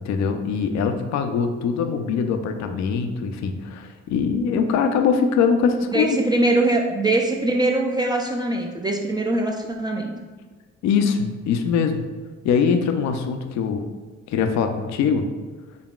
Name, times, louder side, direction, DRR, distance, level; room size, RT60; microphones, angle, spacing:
voice 1, 0.0-6.2 10.8-12.0 12.4-13.8 14.3-15.3, left 6 dB, 65° left, 6 dB, 0.4 m, -22 dB
voice 2, 5.9-10.1, right 2 dB, 15° right, 0 dB, 0.3 m, -22 dB
3.9 x 3.5 x 2.3 m, 1.3 s
cardioid pair, 90°, 30 cm